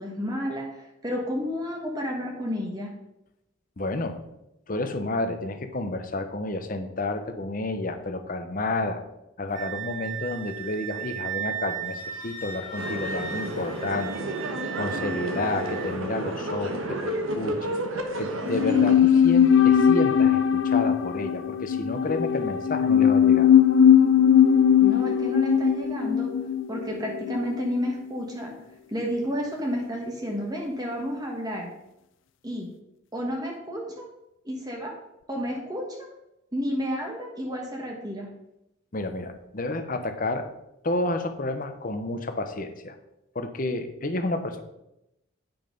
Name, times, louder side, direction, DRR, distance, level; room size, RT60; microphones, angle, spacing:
voice 1, 0.0-2.9 24.8-26.4 26.7-28.5 28.9-31.7 32.4-32.7 33.1-34.1 34.4-35.0 35.3-36.1 36.5-38.3, equal, 20° right, 0 dB, 1.3 m, -31 dB
voice 2, 3.8-4.2 4.7-9.0 9.4-14.3 14.7-17.8 18.2-23.5 38.9-40.5 40.8-43.0 43.3-44.6, left 2 dB, 40° left, 8 dB, 0.8 m, -30 dB
Wind instrument woodwind instrument, 9.5-15.9, right 7 dB, 60° right, 3.9 m, -36 dB
sound 1, 12.8-18.9, right 1 dB, 85° right, 1.2 m, -31 dB
sound 2, 18.5-27.8 28.1-28.2, left 8 dB, 65° left, 0.5 m, -20 dB
8.8 x 5.7 x 5.3 m, 0.88 s
head